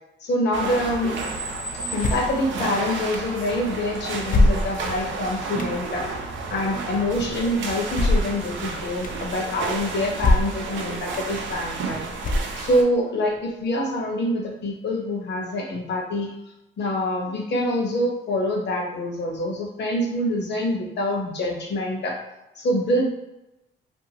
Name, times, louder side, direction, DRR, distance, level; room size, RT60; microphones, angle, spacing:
voice 1, 0.2-1.2 1.9-6.0 6.5-12.0 12.5-16.3 16.8-22.2 22.5-23.1, left 1 dB, 60° left, -1 dB, 0.9 m, -25 dB
Aquarium - Seal Vocalizations, 0.5-12.8, right 3 dB, 70° right, 0.5 m, -31 dB
sound 1, 2.0-2.4 3.1-3.2 4.3-5.0 5.6-5.7 7.9-8.4 9.0-9.1 10.2-10.7 11.1-11.2 12.2-12.8, left 2 dB, 45° left, 0.4 m, -21 dB
2.7 x 2.5 x 2.8 m, 0.92 s
cardioid pair, 90°, 20 cm